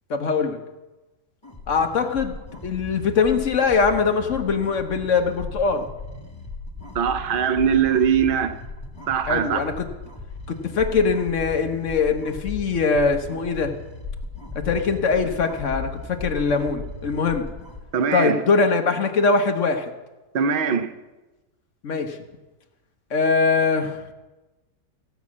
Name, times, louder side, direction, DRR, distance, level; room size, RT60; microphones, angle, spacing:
voice 1, 0.1-0.6 1.7-2.4 2.6-5.8 9.3-9.9 10.5-13.7 14.5-17.5 18.1-19.9 21.8-22.2 23.1-24.0, left 4 dB, 50° left, 1.2 m, -22 dB
sound 1, 1.4-17.8, left 3 dB, 15° left, 1.5 m, -36 dB
voice 2, 6.9-8.6 9.1-9.6 17.9-18.4 20.3-20.9, right 7 dB, 60° right, 0.5 m, -21 dB
16.0 x 6.1 x 7.2 m
omnidirectional pair, 1.8 m